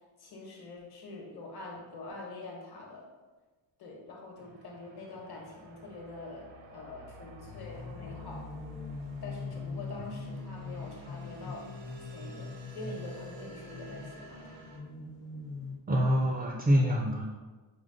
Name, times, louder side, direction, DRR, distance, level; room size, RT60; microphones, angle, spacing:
voice 1, 0.2-3.1 3.8-8.5 9.2-11.7 12.1-14.7, left 2 dB, 55° left, -1 dB, 1.1 m, -45 dB
sound 1, 4.4-14.8, right 1 dB, 70° right, 0.7 m, -51 dB
sound 2, 7.4-15.8, left 4 dB, 30° left, 0.5 m, -42 dB
voice 2, 15.9-17.3, equal, 20° right, 0 dB, 0.3 m, -25 dB
5.0 x 2.2 x 3.7 m, 1.3 s
cardioid pair, 115°, 47 cm